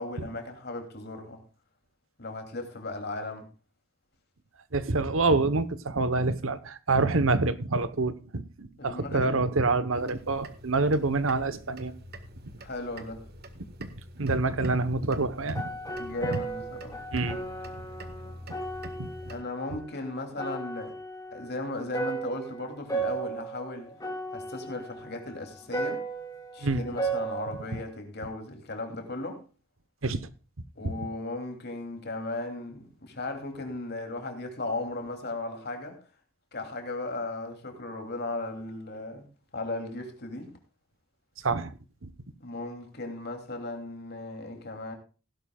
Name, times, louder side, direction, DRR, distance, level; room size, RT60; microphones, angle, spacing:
voice 1, 0.0-1.4 2.2-3.5 8.8-9.4 12.6-13.3 16.0-17.0 19.3-21.0 21.3-23.9 24.3-26.0 26.5-29.4 30.8-36.0 36.5-39.3 39.5-40.6 42.4-44.9, left 2 dB, 50° left, 2.9 m, -36 dB
voice 2, 4.7-11.9 13.8-13.9 14.2-15.6 16.2-16.4 17.1-17.4 19.0-19.1 26.6-26.8 30.0-30.2 30.8-30.9 41.4-41.7 42.0-42.1, right 3 dB, 75° right, 1.0 m, -26 dB
sound 1, 9.9-19.4, right 1 dB, 50° right, 1.5 m, -46 dB
sound 2, 15.6-19.9 20.2-27.8, right 3 dB, 15° left, 2.6 m, -35 dB
17.0 x 11.5 x 2.4 m
head